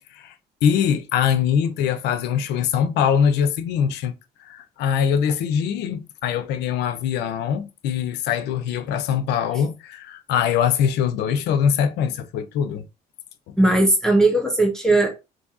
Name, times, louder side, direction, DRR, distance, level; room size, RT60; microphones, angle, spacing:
voice 1, 0.6-4.1 4.4-12.8 13.5-13.6, left 8 dB, 80° left, 0.5 m, -22 dB
voice 2, 13.6-15.1, right 2 dB, 5° left, 0.8 m, -18 dB
2.8 x 2.6 x 3.6 m
cardioid pair, 110°, 17 cm